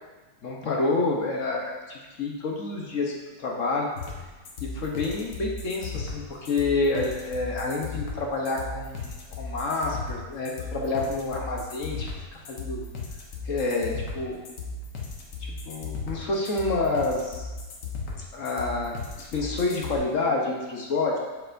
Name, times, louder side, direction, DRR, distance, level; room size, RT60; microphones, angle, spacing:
voice 1, 0.4-3.1 3.4-3.9 4.6-12.1 12.5-12.9 13.4-14.4 15.7-17.5 18.3-21.2, left 3 dB, 55° left, -1 dB, 1.2 m, -28 dB
sound 1, 4.0-20.0, left 3 dB, 85° left, 1.7 m, -36 dB
6.7 x 6.7 x 2.6 m, 1.2 s
omnidirectional pair, 1.8 m